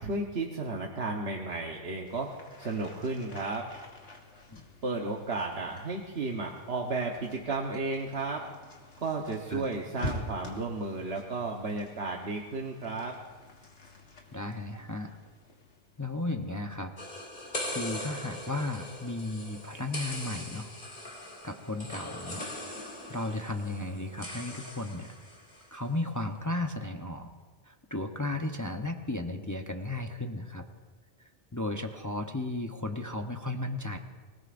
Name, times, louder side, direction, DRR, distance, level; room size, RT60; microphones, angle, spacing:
voice 1, 0.0-2.3 2.6-3.7 4.8-8.4 9.0-13.1, right 3 dB, 65° right, 0 dB, 1.4 m, -33 dB
sound 1, 2.0-16.5 17.2-18.5, left 2 dB, 85° left, 2.2 m, -47 dB
voice 2, 14.3-15.2 16.0-16.9 17.7-20.7 21.4-22.4 23.1-25.1 25.7-27.3 27.7-30.7 31.2-34.0, left 2 dB, 20° left, 3 dB, 0.7 m, -34 dB
sound 2, 17.0-25.7, left 1 dB, 40° left, 2.5 m, -41 dB
25.5 x 18.0 x 2.6 m, 1.4 s
omnidirectional pair, 1.2 m